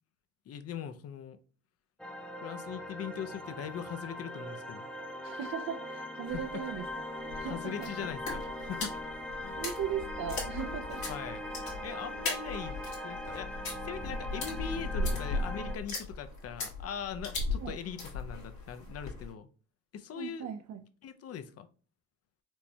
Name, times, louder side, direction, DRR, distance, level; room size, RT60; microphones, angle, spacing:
voice 1, 0.5-1.4 2.4-4.9 6.3-6.6 7.4-8.9 9.4-9.6 11.1-11.4 11.8-19.5 19.9-20.5 21.0-21.7, left 8 dB, 55° left, 0.5 m, -41 dB
sound 1, 2.0-15.8, left 1 dB, 5° left, 0.6 m, -41 dB
voice 2, 5.2-6.9 7.3-8.1 9.6-11.0 17.5-17.8 20.1-20.8, right 9 dB, 65° right, 0.4 m, -38 dB
sound 2, 6.3-19.3, left 2 dB, 70° left, 1.4 m, -38 dB
4.4 x 2.1 x 2.7 m
cardioid pair, 90°, 30 cm